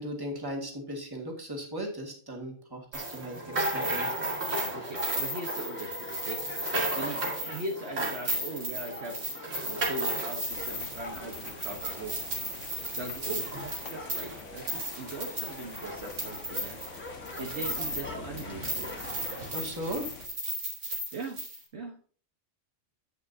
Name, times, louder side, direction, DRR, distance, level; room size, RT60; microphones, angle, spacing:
voice 1, 0.0-4.1 19.5-20.2, equal, 20° right, -1 dB, 1.9 m, -37 dB
sound 1, 2.9-18.1 18.4-21.6, right 1 dB, 80° right, 2.4 m, -34 dB
sound 2, 4.0-19.6, left 1 dB, 10° left, 1.2 m, -44 dB
voice 2, 4.7-6.5 7.0-9.2 9.6-12.2 13.0-16.8 17.4-19.0 21.1-21.4 21.7-22.0, right 2 dB, 60° right, 1 dB, 1.4 m, -40 dB
sound 3, 10.5-20.3, left 5 dB, 75° left, 1.4 m, -46 dB
9.7 x 8.7 x 2.7 m, 0.42 s
omnidirectional pair, 1.3 m